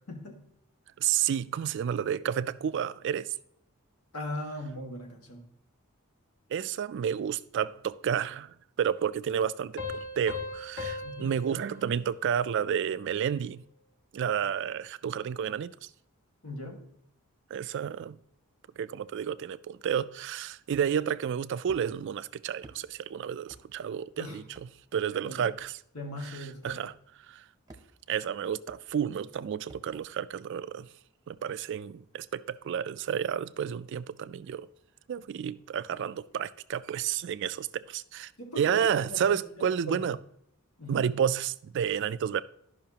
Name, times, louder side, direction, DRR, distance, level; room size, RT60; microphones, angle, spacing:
voice 1, 0.1-0.4 4.1-5.4 11.0-11.3 16.4-16.9 24.2-24.4 25.2-25.4 25.9-26.8 38.4-38.8 39.1-40.1 40.8-41.1, left 1 dB, 85° left, 1.7 m, -39 dB
voice 2, 1.0-3.3 6.5-13.6 14.1-15.7 17.5-18.2 18.8-24.4 24.9-25.7 26.6-26.9 27.3-27.4 28.1-30.9 31.3-34.7 35.1-38.3 38.6-40.2 40.9-42.4, right 8 dB, 55° right, 0.3 m, -31 dB
Piano, 9.8-13.1, left 3 dB, 60° left, 1.7 m, -39 dB
sound 1, 20.7-21.1 21.7-21.9 22.6-22.8 23.5-23.7 24.5-24.7 25.6-25.7 26.6-26.8 27.7-28.1 28.7-28.8 29.7-29.9, right 2 dB, 15° right, 0.7 m, -51 dB
12.0 x 5.6 x 2.8 m
head